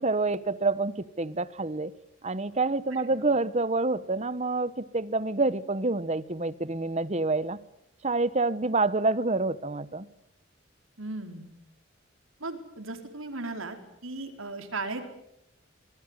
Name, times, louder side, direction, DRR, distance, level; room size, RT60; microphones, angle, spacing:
voice 1, 0.0-1.9 2.2-7.6 8.0-10.1, right 3 dB, 35° right, 1.1 m, -27 dB
voice 2, 11.0-11.5 12.4-13.8 14.0-15.1, right 3 dB, 85° right, 4.5 m, -36 dB
25.5 x 20.0 x 9.9 m
head